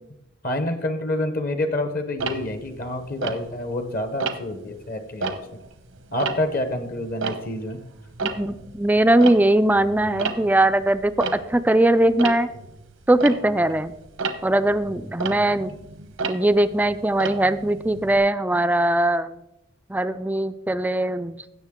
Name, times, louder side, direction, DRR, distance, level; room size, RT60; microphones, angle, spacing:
voice 1, 0.4-5.4 6.1-7.8, left 1 dB, 45° left, 8 dB, 0.8 m, -27 dB
Tick-tock, 2.2-3.8 4.2-4.6 5.1-18.2, right 4 dB, 85° right, 0.9 m, -33 dB
voice 2, 8.2-12.5 13.1-13.9 14.4-15.7 16.3-19.4 19.9-21.4, right 1 dB, 10° right, 12 dB, 0.3 m, -20 dB
16.5 x 6.6 x 3.6 m, 0.88 s
head